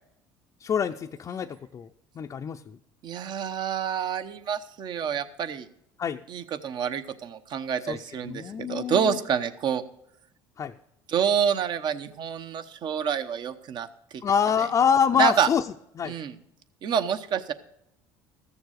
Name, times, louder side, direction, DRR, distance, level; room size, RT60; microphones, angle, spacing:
voice 1, 0.6-2.8 6.0-6.2 7.9-8.0 8.3-9.2 10.6-10.7 14.2-15.6 16.0-16.2, left 7 dB, 35° left, 4 dB, 0.5 m, -26 dB
voice 2, 3.0-5.7 6.3-9.8 11.1-13.9 14.1-14.2 15.2-15.5 16.1-16.3 16.8-17.5, right 8 dB, 50° right, 11 dB, 1.0 m, -27 dB
14.0 x 7.0 x 6.4 m, 0.77 s
supercardioid pair, 95°, 9 cm